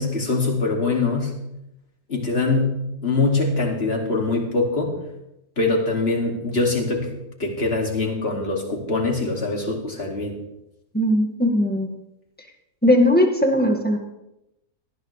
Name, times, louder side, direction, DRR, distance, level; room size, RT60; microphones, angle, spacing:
voice 1, 0.0-1.4 2.1-4.9 5.6-7.1 7.4-10.4, left 3 dB, 40° left, 1 dB, 2.8 m, -23 dB
voice 2, 10.9-11.9 12.8-14.0, left 1 dB, 5° left, 2 dB, 1.8 m, -18 dB
18.5 x 14.5 x 3.3 m, 0.86 s
omnidirectional pair, 1.7 m